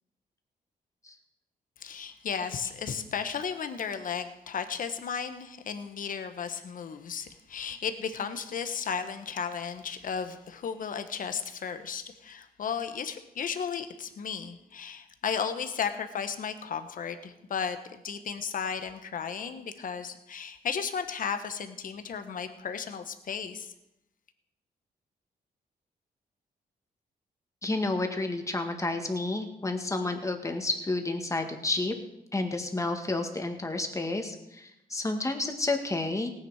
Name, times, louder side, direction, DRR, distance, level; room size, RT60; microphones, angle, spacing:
voice 1, 1.8-23.7, left 6 dB, 60° left, 9 dB, 1.3 m, -34 dB
voice 2, 27.6-31.9 32.3-36.3, left 2 dB, 20° left, 5 dB, 1.8 m, -30 dB
17.5 x 9.9 x 4.9 m, 0.88 s
cardioid pair, 110°, 16 cm